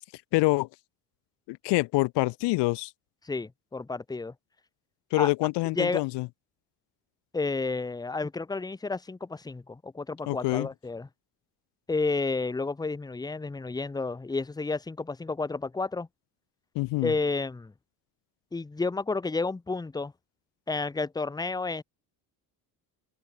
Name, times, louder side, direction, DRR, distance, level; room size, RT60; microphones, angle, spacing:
voice 1, 0.3-0.7 1.5-2.9 5.1-6.3 10.3-10.7 16.7-17.1, left 22 dB, 85° left, 0.6 m, -26 dB
voice 2, 3.2-4.3 5.2-5.3 5.7-6.0 7.3-11.1 11.9-16.1 17.0-17.7 18.5-20.1 20.7-21.8, left 3 dB, 10° left, 1.1 m, -31 dB
cardioid pair, 175°, 41 cm